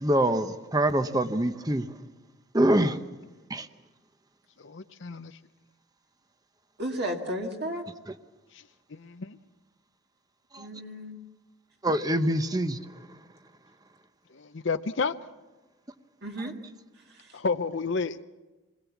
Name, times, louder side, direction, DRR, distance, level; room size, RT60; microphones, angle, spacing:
voice 1, 0.0-1.9 2.5-3.0 3.5-3.7 10.5-10.7 11.8-12.8, right 1 dB, 20° right, 0.9 m, -24 dB
voice 2, 4.6-5.3 8.9-9.4 14.3-15.1 17.3-18.2, left 4 dB, 60° left, 0.7 m, -30 dB
voice 3, 6.8-7.8 10.6-11.2 16.2-16.5 17.1-17.4, equal, 50° right, 2.0 m, -34 dB
27.0 x 21.0 x 7.2 m
head